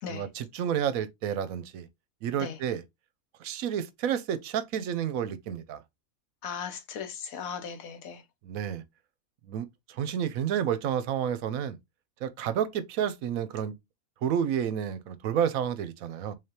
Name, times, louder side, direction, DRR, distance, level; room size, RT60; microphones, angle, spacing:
voice 1, 0.1-1.9 2.2-2.8 3.4-5.8 8.4-8.8 9.5-11.8 12.2-13.7 14.2-16.3, right 9 dB, 75° right, 1.0 m, -30 dB
voice 2, 6.4-8.2, left 7 dB, 70° left, 1.1 m, -37 dB
3.7 x 3.3 x 2.8 m
omnidirectional pair, 1.5 m